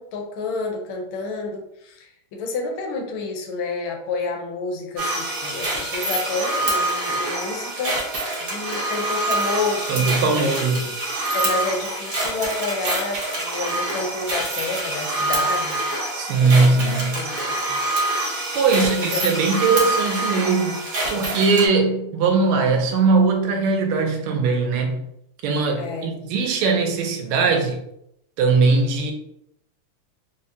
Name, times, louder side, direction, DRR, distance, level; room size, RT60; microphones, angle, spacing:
voice 1, 0.0-10.6 11.3-15.8 16.4-17.8 18.7-19.2 25.8-26.1, left 3 dB, 75° left, 2 dB, 1.4 m, -30 dB
sound 1, 5.0-21.7, right 1 dB, 55° right, 1.1 m, -26 dB
voice 2, 9.9-10.9 16.1-17.2 18.5-20.8 21.1-25.1 25.4-27.8 28.4-29.1, right 4 dB, 85° right, 3 dB, 1.5 m, -20 dB
4.7 x 2.0 x 2.6 m, 0.78 s
omnidirectional pair, 2.3 m